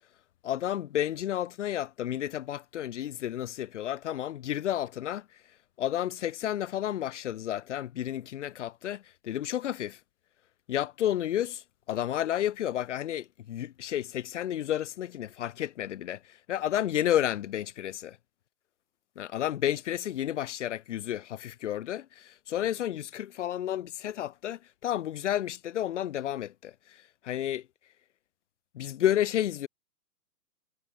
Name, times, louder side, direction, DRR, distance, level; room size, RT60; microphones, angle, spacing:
voice 1, 0.4-5.3 5.8-10.0 10.7-18.2 19.2-27.7 28.7-29.7, left 11 dB, 45° left, 3.9 m, -31 dB
figure-of-eight pair, 130°, 48 cm